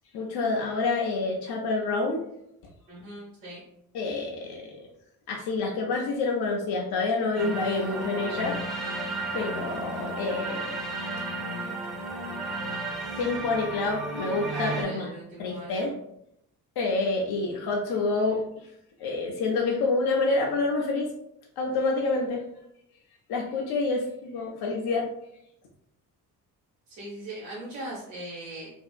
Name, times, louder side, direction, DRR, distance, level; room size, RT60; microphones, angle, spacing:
voice 1, 0.1-2.3 3.9-4.7 5.3-9.0 9.3-10.7 13.2-15.1 15.4-15.9 16.8-18.7 19.0-21.1 21.6-22.4 23.3-25.1, left 3 dB, 60° left, 0 dB, 0.6 m, -28 dB
voice 2, 2.9-3.6 14.5-15.8 26.9-28.7, right 1 dB, 80° right, -7 dB, 1.0 m, -39 dB
sound 1, 7.4-14.8, right 2 dB, ahead, 0.5 m, -33 dB
2.7 x 2.4 x 2.3 m, 0.76 s
hypercardioid pair, 45°, 44 cm